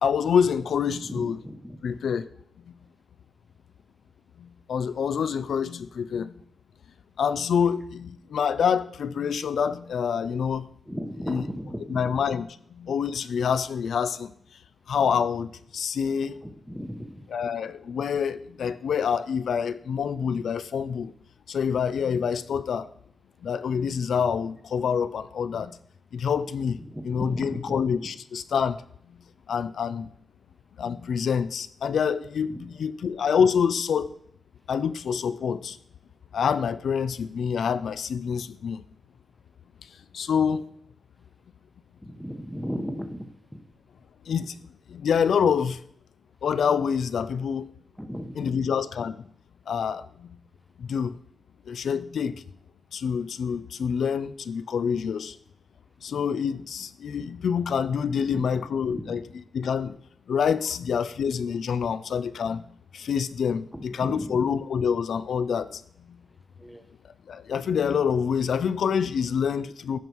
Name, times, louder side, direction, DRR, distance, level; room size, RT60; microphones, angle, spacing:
voice 1, 0.0-1.4 1.8-2.3 4.4-6.4 7.2-10.7 11.3-11.4 11.9-12.4 12.7-14.3 14.9-16.4 17.3-21.1 21.5-22.9 23.4-25.8 26.1-26.8 27.1-28.8 29.5-30.1 30.8-34.1 34.7-35.8 36.3-38.8 40.1-40.6 44.3-44.6 44.9-45.8 46.4-47.7 48.4-49.3 49.7-50.4 50.8-51.2 51.7-52.4 52.9-55.4 56.0-59.2 59.5-60.0 60.3-62.6 62.9-65.8 66.1-66.2 67.3-70.0, left 7 dB, 70° left, 0.5 m, -26 dB
voice 2, 1.0-1.8 10.9-12.1 16.4-17.3 26.8-27.8 32.5-32.6 42.0-43.6 48.0-48.6 58.1-58.6 58.9-59.1 61.8-61.9 64.0-64.4 66.6-66.8, equal, ahead, 1.0 m, -36 dB
15.0 x 5.4 x 4.6 m
wide cardioid pair, 160°, 0 cm